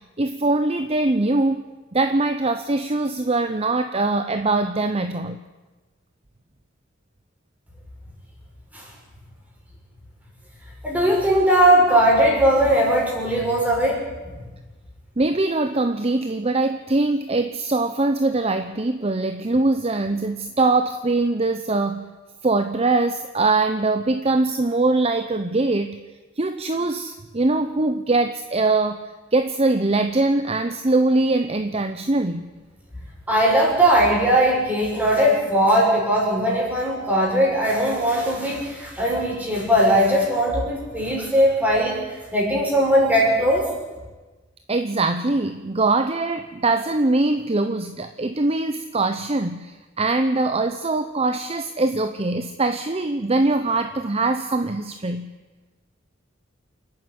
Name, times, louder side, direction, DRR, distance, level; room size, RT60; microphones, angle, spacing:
voice 1, 0.0-1.6 1.9-5.4 15.2-22.1 22.4-26.0 26.4-32.5 44.7-55.3, right 2 dB, 30° right, 8 dB, 0.8 m, -22 dB
voice 2, 10.8-14.0 33.3-42.0 42.3-43.7, right 1 dB, 10° right, -3 dB, 6.2 m, -19 dB
28.0 x 9.7 x 9.7 m, 1.2 s
head